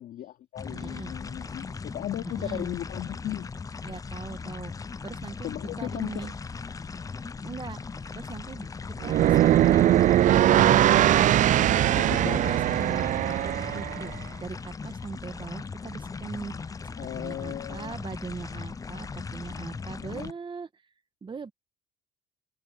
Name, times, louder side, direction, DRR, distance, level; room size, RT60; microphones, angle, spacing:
voice 1, 0.0-3.5 5.4-6.3 12.0-12.5 17.0-18.0 20.0-20.3, left 12 dB, 70° left, 3.0 m, -36 dB
sound 1, 0.6-20.3, left 4 dB, 20° left, 0.6 m, -38 dB
voice 2, 0.7-1.1 2.2-2.8 3.8-4.7 5.0-5.5 5.8-6.3 7.4-7.8 8.2-8.7 9.0-10.0 12.3-13.1 13.4-14.1 14.4-20.7 21.2-21.5, right 5 dB, 30° right, 1.6 m, -40 dB
sound 2, 9.0-14.1, right 12 dB, 50° right, 0.4 m, -21 dB
cardioid pair, 110°, 17 cm